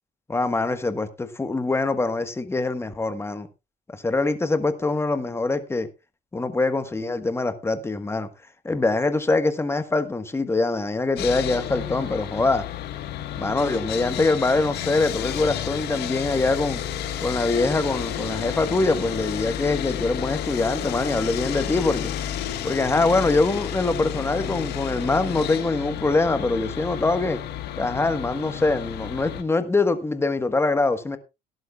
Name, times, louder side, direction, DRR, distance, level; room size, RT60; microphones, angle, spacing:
voice 1, 0.3-3.5 3.9-5.9 6.3-8.3 8.6-12.6 13.4-16.8 17.2-22.1 22.6-27.4 27.8-31.2, left 3 dB, 15° left, 1.4 m, -24 dB
Sawing, 11.2-29.4, left 10 dB, 75° left, 1.5 m, -31 dB
17.5 x 11.5 x 2.4 m
cardioid pair, 110°, 17 cm